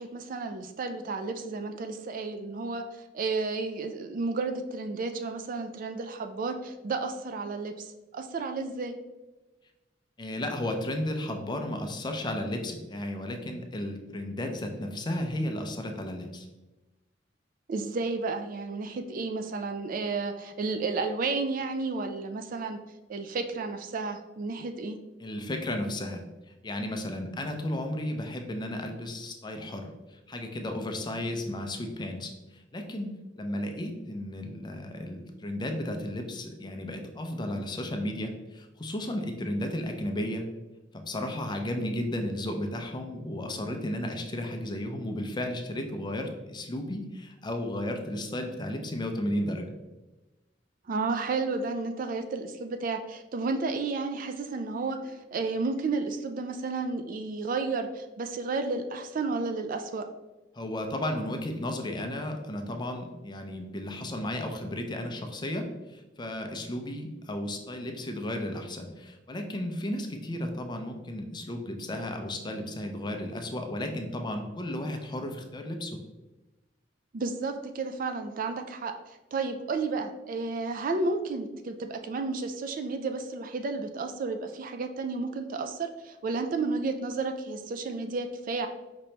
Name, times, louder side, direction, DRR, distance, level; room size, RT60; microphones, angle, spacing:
voice 1, 0.0-7.9 8.1-8.9 17.7-22.8 23.1-25.0 50.9-60.1 77.1-88.7, right 3 dB, 50° right, 7 dB, 0.4 m, -32 dB
voice 2, 10.2-16.5 25.2-40.4 40.9-49.7 60.5-76.0, left 1 dB, 25° left, 4 dB, 0.5 m, -34 dB
5.2 x 2.8 x 3.3 m, 1.1 s
head